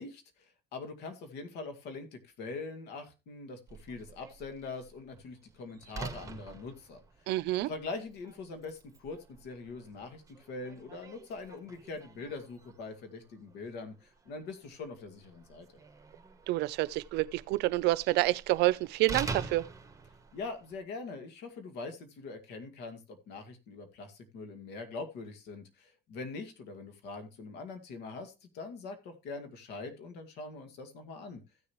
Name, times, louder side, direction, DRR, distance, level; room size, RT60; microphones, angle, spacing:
voice 1, 0.0-7.0 7.7-10.2 10.5-15.7 20.3-31.4, left 3 dB, 85° left, 2.1 m, -43 dB
Slam, 3.7-20.8, right 4 dB, 20° right, 1.9 m, -47 dB
voice 2, 7.3-7.7 16.5-19.6, right 18 dB, 85° right, 0.5 m, -28 dB
15.5 x 6.8 x 3.1 m
cardioid pair, 110°, 17 cm